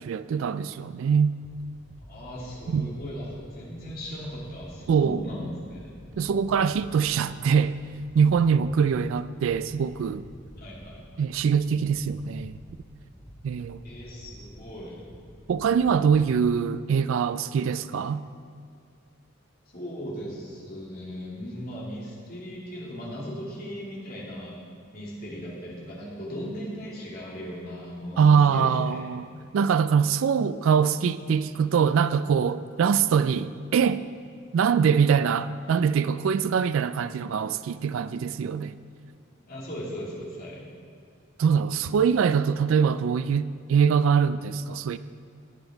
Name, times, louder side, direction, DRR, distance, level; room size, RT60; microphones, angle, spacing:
voice 1, 0.0-1.3 2.7-2.9 4.9-5.3 6.2-7.8 8.1-10.2 11.2-12.6 13.4-13.8 15.5-18.2 28.2-34.1 34.5-38.7 41.4-45.0, right 6 dB, 70° right, 0.3 m, -23 dB
sound 1, 1.4-16.4, equal, 5° left, 2.4 m, -49 dB
voice 2, 2.1-5.9 10.6-11.3 13.8-15.0 19.7-24.6 24.9-29.1 39.5-40.6, equal, 45° left, 2.9 m, -38 dB
17.0 x 7.9 x 3.9 m
head